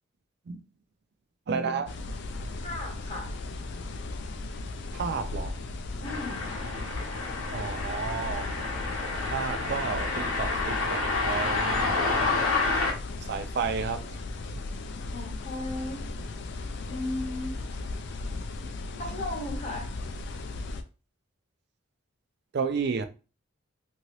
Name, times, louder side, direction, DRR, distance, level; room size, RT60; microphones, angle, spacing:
voice 1, 1.5-1.9 4.9-5.5 7.5-8.5 9.2-12.5 13.3-14.0 22.5-23.0, right 5 dB, 50° right, 0.3 m, -32 dB
sound 1, 1.9-20.8, left 2 dB, 50° left, 0.3 m, -37 dB
voice 2, 2.6-3.3 6.0-6.5 15.1-16.0 16.9-17.5 19.0-19.9, left 1 dB, 30° left, 0.8 m, -35 dB
sound 2, 6.0-12.9, left 3 dB, 70° left, 0.8 m, -29 dB
2.8 x 2.7 x 3.0 m
head